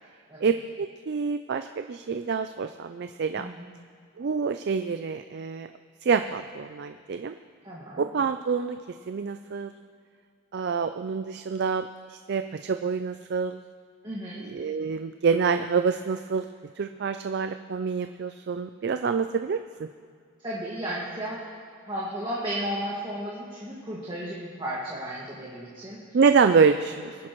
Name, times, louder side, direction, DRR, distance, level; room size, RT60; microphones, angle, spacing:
voice 1, 0.4-3.5 4.2-5.7 6.0-7.3 8.0-8.8 9.1-9.7 10.5-13.6 14.4-16.5 16.7-19.9 26.1-27.2, right 5 dB, 50° right, 8 dB, 0.4 m, -26 dB
voice 2, 3.4-3.7 7.6-8.0 14.0-14.4 20.4-21.4 21.9-26.0, right 1 dB, 20° right, -6 dB, 1.8 m, -34 dB
22.5 x 10.5 x 3.1 m, 2.2 s
head